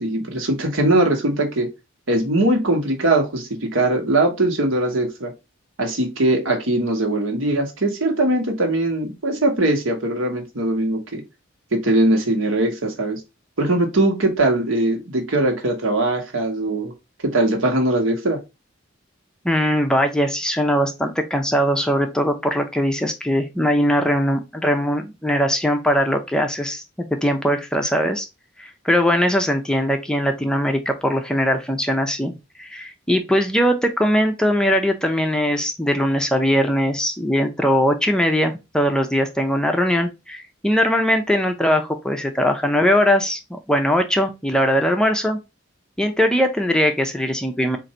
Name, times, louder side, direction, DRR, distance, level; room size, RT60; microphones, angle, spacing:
voice 1, 0.0-1.7 2.1-5.3 5.8-11.2 11.7-13.2 13.6-16.9 17.2-18.4, right 2 dB, 80° right, 1.2 m, -20 dB
voice 2, 19.4-26.8 27.2-28.3 28.6-32.3 32.6-45.4 46.0-47.8, equal, 5° left, 0.4 m, -20 dB
3.8 x 2.5 x 4.2 m
head